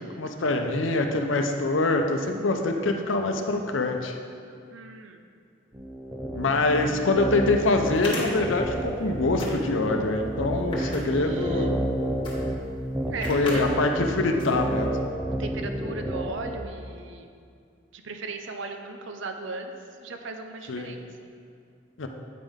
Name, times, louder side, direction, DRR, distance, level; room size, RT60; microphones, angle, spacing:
voice 1, 0.2-4.1 6.3-11.9 13.3-14.9 20.7-20.9 22.0-22.1, left 2 dB, 85° left, 4 dB, 0.6 m, -25 dB
voice 2, 4.7-5.3 10.7-11.7 13.1-13.6 15.4-17.3 17.9-19.7 20.0-21.1, right 3 dB, 80° right, 5 dB, 0.6 m, -37 dB
sound 1, 5.7-16.5, right 1 dB, 10° right, 0.5 m, -31 dB
sound 2, 6.8-6.9 7.8-9.0 9.3-9.9 10.5-11.7 12.2-12.4 12.7-12.8 13.2-13.6 14.0-14.1 14.4-14.9, left 2 dB, 25° left, 1.3 m, -37 dB
8.5 x 5.4 x 3.5 m, 2.3 s
head